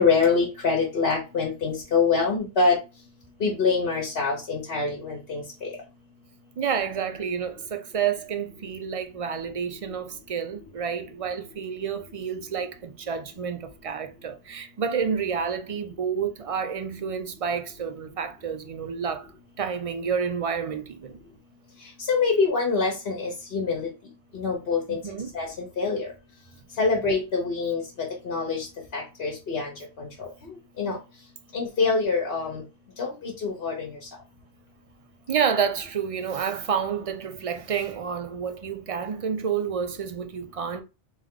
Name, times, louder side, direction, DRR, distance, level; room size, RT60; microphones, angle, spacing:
voice 1, 0.0-2.8 3.4-5.7 22.0-23.9 24.3-25.0 25.3-26.1 26.8-28.7 28.9-30.3 30.8-31.0 31.5-32.6 33.0-34.0, left 4 dB, 65° left, 1.2 m, -25 dB
voice 2, 6.6-19.3 19.6-21.2 24.9-25.3 35.3-40.8, right 7 dB, 45° right, 0.4 m, -29 dB
3.4 x 3.2 x 3.6 m
omnidirectional pair, 1.1 m